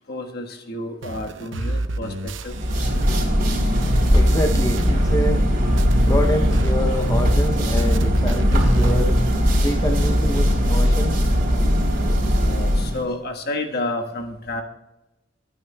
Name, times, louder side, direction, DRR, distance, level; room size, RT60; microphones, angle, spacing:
voice 1, 0.1-2.9 12.4-14.6, left 2 dB, 55° left, 3 dB, 1.4 m, -30 dB
sound 1, 1.0-5.5 5.8-9.0, right 2 dB, 75° right, 0.7 m, -30 dB
sound 2, 2.5-13.0, equal, 50° right, 3.2 m, -19 dB
voice 2, 3.3-3.7 4.1-5.5 6.0-9.2 9.6-11.2, left 1 dB, 15° left, 4 dB, 0.6 m, -27 dB
23.0 x 9.1 x 2.2 m, 0.97 s
head